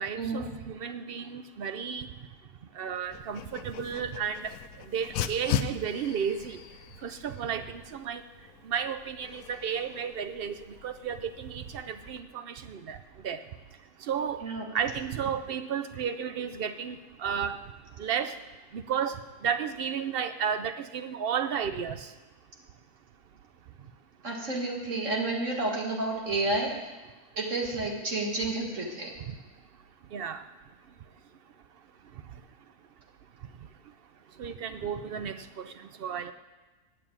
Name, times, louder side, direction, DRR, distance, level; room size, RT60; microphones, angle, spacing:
voice 1, 0.0-2.1 2.8-4.5 4.9-6.6 7.0-8.2 8.6-10.6 10.8-13.0 13.2-13.4 14.0-14.4 14.7-17.6 18.0-18.3 18.7-22.1 29.3-29.4 30.1-30.4 34.4-36.3, right 7 dB, 75° right, 10 dB, 0.5 m, -33 dB
Dog, 3.1-12.2, left 9 dB, 75° left, 1.1 m, -39 dB
voice 2, 24.2-26.8 27.4-29.1, right 2 dB, 55° right, -1 dB, 2.0 m, -30 dB
9.4 x 7.6 x 8.6 m, 1.2 s
omnidirectional pair, 1.6 m